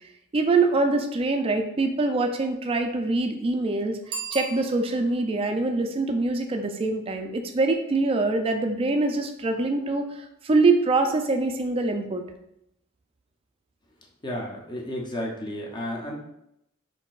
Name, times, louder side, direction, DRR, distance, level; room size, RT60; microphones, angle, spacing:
voice 1, 0.3-12.2, right 3 dB, 25° right, 5 dB, 0.4 m, -24 dB
Bicycle bell, 4.0-5.3, right 5 dB, 80° right, 0.6 m, -37 dB
voice 2, 14.2-16.1, left 1 dB, 20° left, -1 dB, 0.6 m, -32 dB
5.7 x 2.6 x 2.4 m, 0.81 s
head